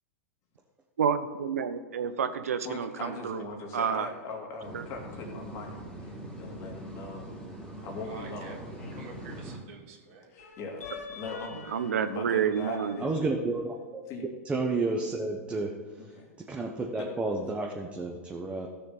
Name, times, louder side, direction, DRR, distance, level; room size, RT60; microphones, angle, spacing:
voice 1, 1.0-3.4 3.7-4.1 4.7-4.8 11.7-13.0, right 7 dB, 80° right, 11 dB, 0.8 m, -29 dB
voice 2, 2.6-7.3 7.8-8.6 10.3-13.1 14.1-14.2 16.0-16.3 16.9-17.1, left 3 dB, 40° left, 1 dB, 2.7 m, -41 dB
sound 1, 4.6-9.6, right 1 dB, 5° left, 3.2 m, -42 dB
voice 3, 8.0-10.3, right 4 dB, 55° right, 1 dB, 2.3 m, -47 dB
sound 2, 8.8-9.9 10.4-13.7, left 5 dB, 85° left, 1.6 m, -46 dB
voice 4, 13.0-14.0 14.4-16.1 16.5-18.7, right 3 dB, 15° right, 0 dB, 1.2 m, -31 dB
14.5 x 6.9 x 4.1 m, 1.5 s
hypercardioid pair, 105°, 8 cm